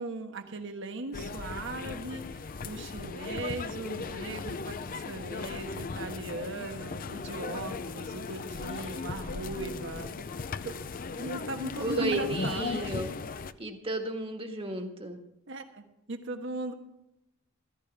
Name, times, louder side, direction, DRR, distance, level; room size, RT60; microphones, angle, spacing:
voice 1, 0.0-10.3 10.6-10.8 11.2-12.8 15.5-16.7, right 2 dB, 65° right, 6 dB, 1.4 m, -38 dB
sound 1, 1.1-13.5, left 4 dB, 45° left, 0.5 m, -37 dB
voice 2, 11.8-13.2 13.6-15.2, right 2 dB, 30° right, 3 dB, 1.6 m, -33 dB
15.0 x 14.0 x 3.5 m, 0.86 s
head